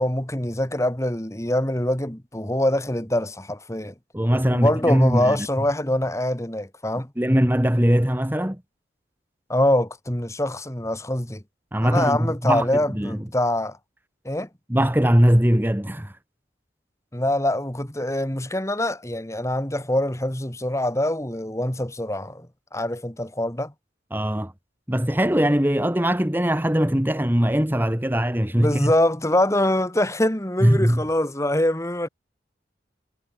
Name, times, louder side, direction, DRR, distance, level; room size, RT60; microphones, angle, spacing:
voice 1, 0.0-3.9 4.5-7.1 9.5-11.4 11.8-13.8 14.2-14.5 17.1-22.5 22.7-23.7 28.5-32.1, left 1 dB, 15° left, 2.2 m, -24 dB
voice 2, 4.1-5.4 7.2-8.6 11.7-13.2 14.7-16.1 24.1-24.5 24.9-28.9 30.6-31.0, equal, 10° right, 1.4 m, -21 dB
head